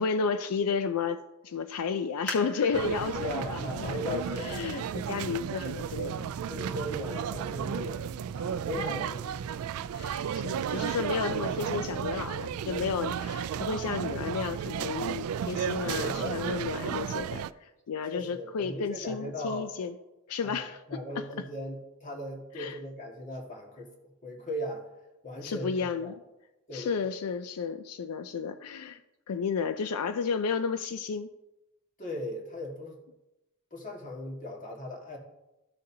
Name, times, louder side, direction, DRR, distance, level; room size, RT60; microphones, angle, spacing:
voice 1, 0.0-6.3 8.8-8.9 9.9-19.9 20.3-21.3 22.6-22.8 25.4-26.1 26.7-29.0 29.3-31.3, left 5 dB, 85° left, 10 dB, 0.4 m, -32 dB
sound 1, 2.3-5.6 6.2-6.3 7.0-7.3 7.7-7.8, equal, 10° left, 1.5 m, -45 dB
sound 2, 2.7-17.5, right 8 dB, 75° right, 0.3 m, -33 dB
voice 2, 3.1-4.7 6.5-8.0 8.3-9.3 15.8-16.4 18.1-19.7 20.4-23.9 24.2-24.8 25.2-26.1 26.7-27.2 32.0-33.0 33.7-35.2, left 1 dB, 35° left, -1 dB, 1.8 m, -38 dB
14.0 x 6.6 x 2.8 m, 0.98 s
head